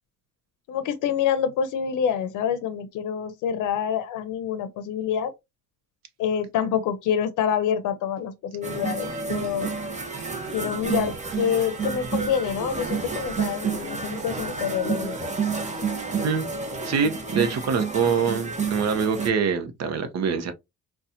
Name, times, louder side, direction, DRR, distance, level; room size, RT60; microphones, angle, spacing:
voice 1, 0.7-5.3 6.2-9.7 10.5-15.4, left 8 dB, 85° left, 0.6 m, -27 dB
sound 1, 8.6-19.3, right 5 dB, 25° right, 0.8 m, -30 dB
voice 2, 16.8-20.5, right 6 dB, 60° right, 0.8 m, -24 dB
4.1 x 2.3 x 2.6 m
cardioid pair, 90°, 30 cm